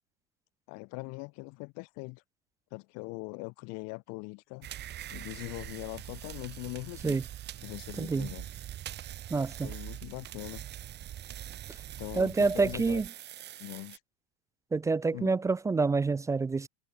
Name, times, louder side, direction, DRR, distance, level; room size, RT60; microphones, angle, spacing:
voice 1, 0.7-2.2 2.7-4.7 5.1-7.2 7.6-8.5 9.6-10.6 12.0-13.0 13.6-14.0 15.1-15.3, left 29 dB, 50° left, 5.2 m, -41 dB
sound 1, 4.6-14.0, right 12 dB, 30° right, 5.8 m, -43 dB
voice 2, 8.0-8.3 9.3-9.7 12.2-13.1 14.7-16.7, right 4 dB, 10° right, 0.7 m, -27 dB
supercardioid pair, 150°, 33 cm